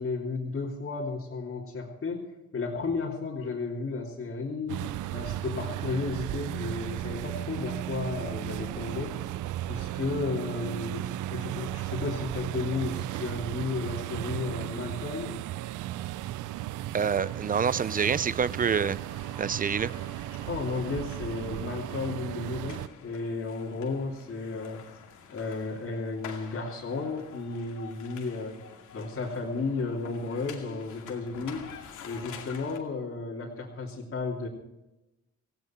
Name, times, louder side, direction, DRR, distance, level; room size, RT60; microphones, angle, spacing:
voice 1, 0.0-2.2 2.5-9.3 9.7-15.4 20.3-24.8 25.3-28.6 28.9-34.5, left 4 dB, 45° left, -4 dB, 2.9 m, -33 dB
sound 1, 4.7-22.9, right 14 dB, 80° right, 0.5 m, -35 dB
voice 2, 16.9-19.0 19.4-19.9, right 6 dB, 30° right, 19 dB, 0.6 m, -27 dB
sound 2, 17.1-32.8, left 7 dB, 80° left, 2.4 m, -49 dB
17.5 x 16.0 x 4.5 m, 0.97 s
cardioid pair, 90°, 30 cm